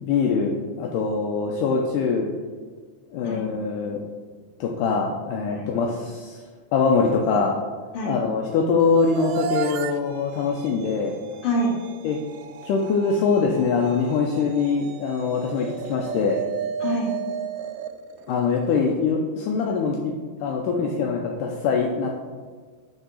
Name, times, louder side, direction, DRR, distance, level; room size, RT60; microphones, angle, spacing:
voice 1, 0.0-2.3 3.1-4.0 4.6-6.4 6.7-7.5 8.0-11.1 12.0-12.2 12.6-16.4 18.3-20.1 20.4-22.1, left 5 dB, 80° left, 0 dB, 2.0 m, -23 dB
sound 1, 8.8-19.0, right 8 dB, 85° right, 1.9 m, -34 dB
voice 2, 11.4-11.7 16.8-17.1, equal, 50° left, -3 dB, 2.1 m, -26 dB
8.1 x 3.5 x 6.2 m, 1.5 s
omnidirectional pair, 4.1 m